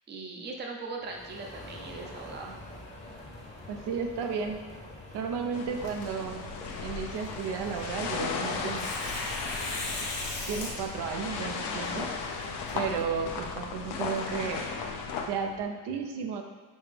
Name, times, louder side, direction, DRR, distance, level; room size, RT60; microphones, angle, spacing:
voice 1, 0.1-2.5, right 3 dB, 25° right, 1 dB, 0.5 m, -39 dB
sound 1, 1.0-15.6, left 1 dB, 15° left, 0.8 m, -47 dB
voice 2, 3.7-4.6 5.1-6.5 6.8-8.9 9.9-10.0 10.5-12.1 12.7-14.6 15.3-16.4, right 6 dB, 75° right, 4 dB, 0.6 m, -33 dB
sound 2, 5.5-15.3, left 5 dB, 70° left, 0.6 m, -36 dB
Tearing, 5.8-13.5, left 2 dB, 55° left, 1.3 m, -40 dB
5.3 x 2.9 x 3.3 m, 1.5 s
cardioid pair, 135°, 41 cm